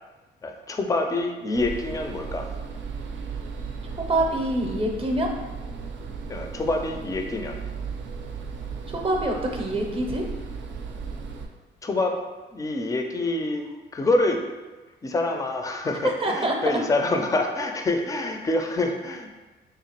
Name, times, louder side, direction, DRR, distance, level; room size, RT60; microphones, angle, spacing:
voice 1, 0.4-2.5 6.3-7.6 11.8-12.2 12.5-13.7 13.9-14.4 15.0-19.3, left 2 dB, 15° left, 4 dB, 0.4 m, -26 dB
sound 1, 1.5-11.5, right 5 dB, 70° right, 0.5 m, -36 dB
voice 2, 4.1-5.3 8.9-10.2 16.0-16.6, right 1 dB, 30° right, 1 dB, 0.6 m, -25 dB
3.4 x 2.9 x 2.9 m, 1.2 s
cardioid pair, 90°, 20 cm